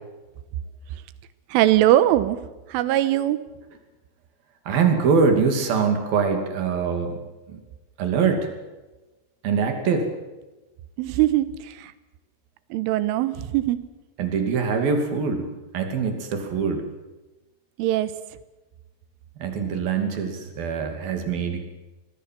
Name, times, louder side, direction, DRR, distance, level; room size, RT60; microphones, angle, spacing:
voice 1, 1.5-2.4 2.7-3.4 11.0-11.9 12.7-13.9 17.8-18.1, right 14 dB, 85° right, 14 dB, 3.5 m, -21 dB
voice 2, 4.7-7.1 7.5-7.6 8.0-8.5 9.4-10.1 14.2-15.5 15.7-16.8 19.4-21.6, right 5 dB, 55° right, 5 dB, 4.0 m, -23 dB
24.0 x 19.0 x 7.6 m, 1.1 s
omnidirectional pair, 5.7 m